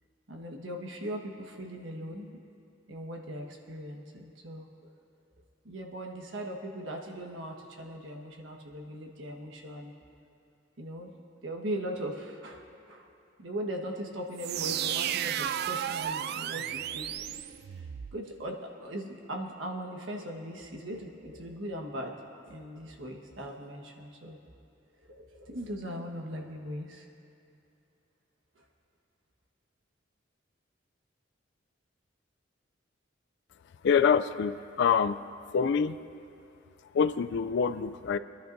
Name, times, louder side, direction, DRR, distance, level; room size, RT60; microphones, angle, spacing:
voice 1, 0.3-2.4 2.9-4.7 5.6-9.9 10.8-11.1 11.4-13.1 13.4-17.4 17.7-17.9 18.1-22.2 22.5-24.4 25.1-27.1 28.5-28.6, equal, 75° right, 2 dB, 1.4 m, -39 dB
sound 1, 14.4-18.2, right 10 dB, 55° right, 0.3 m, -33 dB
voice 2, 33.8-35.2 35.5-36.0 36.9-38.2, left 6 dB, 65° left, 14 dB, 0.4 m, -25 dB
23.5 x 11.0 x 2.6 m, 2.7 s
head